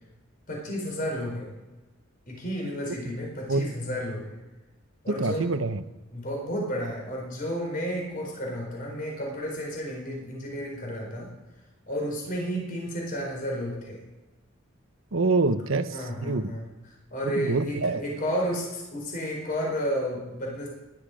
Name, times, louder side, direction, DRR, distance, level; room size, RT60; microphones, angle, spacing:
voice 1, 0.5-1.5 2.3-4.3 5.0-5.5 6.1-11.3 11.9-14.0 15.9-16.6 17.1-20.7, equal, 45° left, -1 dB, 4.4 m, -32 dB
voice 2, 5.1-5.8 15.1-16.6 17.2-18.0, right 3 dB, 80° right, 10 dB, 1.0 m, -26 dB
20.0 x 12.5 x 5.1 m, 1.2 s
head